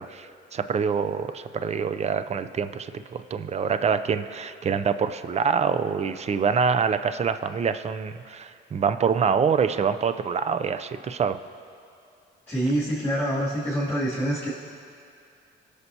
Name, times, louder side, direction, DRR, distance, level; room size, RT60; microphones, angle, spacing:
voice 1, 0.0-11.4, right 6 dB, 35° right, 11 dB, 0.5 m, -25 dB
voice 2, 12.5-14.5, right 1 dB, 10° left, -10 dB, 2.6 m, -26 dB
20.0 x 6.7 x 2.8 m, 2.5 s
cardioid pair, 90°, 20 cm